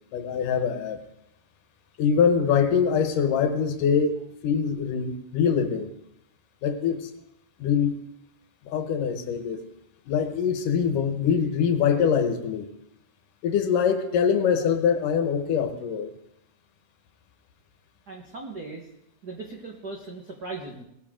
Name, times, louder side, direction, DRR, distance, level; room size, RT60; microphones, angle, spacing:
voice 1, 0.1-1.0 2.0-5.9 6.6-7.1 7.6-8.0 8.6-9.6 10.1-12.7 13.4-16.1, left 7 dB, 75° left, 8 dB, 2.6 m, -24 dB
voice 2, 18.1-18.9 19.2-20.8, right 3 dB, 60° right, 1 dB, 1.0 m, -38 dB
19.5 x 14.0 x 3.7 m, 0.82 s
omnidirectional pair, 4.0 m